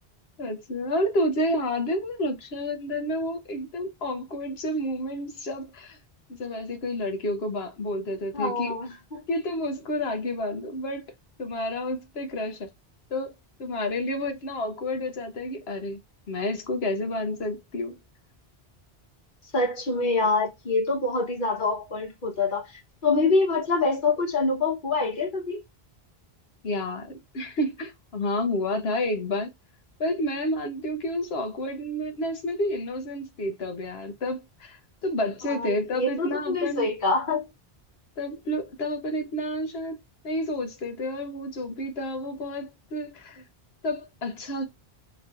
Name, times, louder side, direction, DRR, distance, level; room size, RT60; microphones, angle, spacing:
voice 1, 0.4-6.0 6.3-8.7 9.3-11.1 11.4-12.7 13.1-16.0 16.3-18.0 26.6-29.5 30.0-36.9 38.2-40.0 40.2-43.4 43.8-44.7, left 1 dB, 75° left, 1.3 m, -30 dB
voice 2, 8.3-9.2 19.5-25.6 35.5-37.5, left 3 dB, 55° left, 1.4 m, -26 dB
4.7 x 3.0 x 2.5 m
omnidirectional pair, 1.0 m